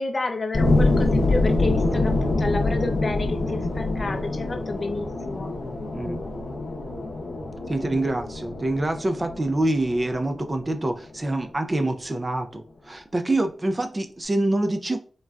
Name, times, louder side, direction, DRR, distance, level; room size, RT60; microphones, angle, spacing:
voice 1, 0.0-5.5, left 3 dB, 40° left, 0.4 m, -30 dB
sound 1, 0.5-11.3, left 2 dB, 85° left, 0.6 m, -25 dB
voice 2, 5.9-6.2 7.7-15.0, right 2 dB, 25° right, 0.3 m, -26 dB
3.7 x 2.1 x 2.3 m
wide cardioid pair, 100°, 0 cm